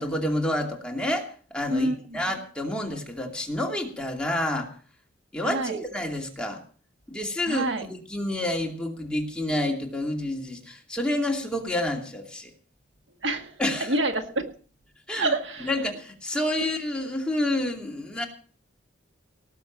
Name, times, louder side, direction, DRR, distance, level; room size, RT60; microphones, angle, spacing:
voice 1, 0.0-4.7 5.3-6.6 7.1-12.5 13.6-14.0 15.1-15.3 15.6-18.3, left 1 dB, 5° left, 0 dB, 2.5 m, -29 dB
voice 2, 1.7-2.2 5.4-5.8 7.5-7.9 13.2-13.5 13.8-14.5 15.2-15.7, right 2 dB, 70° right, 6 dB, 1.7 m, -27 dB
19.0 x 7.0 x 7.4 m, 0.43 s
head